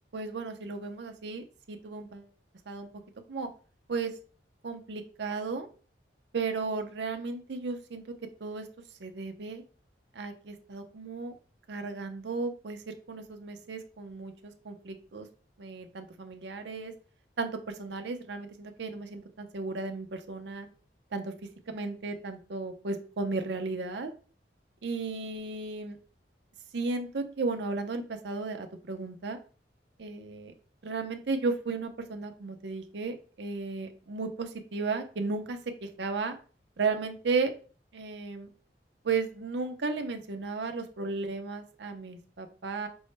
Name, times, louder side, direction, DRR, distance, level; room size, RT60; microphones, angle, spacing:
voice 1, 0.1-2.3 2.7-2.9 3.3-3.5 3.9-4.1 4.6-5.7 6.3-8.0 8.4-8.7 9.0-9.6 10.1-11.3 11.7-15.3 15.6-16.9 17.4-20.7 21.1-21.3 21.7-24.1 24.8-26.0 26.7-29.4 30.0-30.5 30.8-36.3 36.8-37.5 37.9-38.5 39.0-42.9, right 4 dB, 70° right, 6 dB, 0.6 m, -34 dB
5.3 x 2.1 x 3.1 m, 0.38 s
head